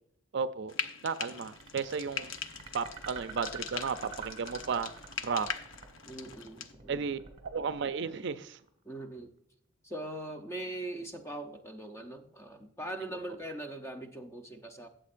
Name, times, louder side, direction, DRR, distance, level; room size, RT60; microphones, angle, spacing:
voice 1, 0.3-0.7 1.0-2.3 2.7-4.9 5.2-5.5 6.9-8.6, right 5 dB, 60° right, 0.5 m, -34 dB
Frying (food), 0.7-6.7, left 6 dB, 70° left, 0.7 m, -41 dB
sound 1, 1.6-8.7, right 5 dB, 30° right, 1.5 m, -48 dB
voice 2, 6.1-7.0 8.8-9.3 9.8-14.9, right 1 dB, 15° left, 0.7 m, -41 dB
13.0 x 7.7 x 2.6 m
head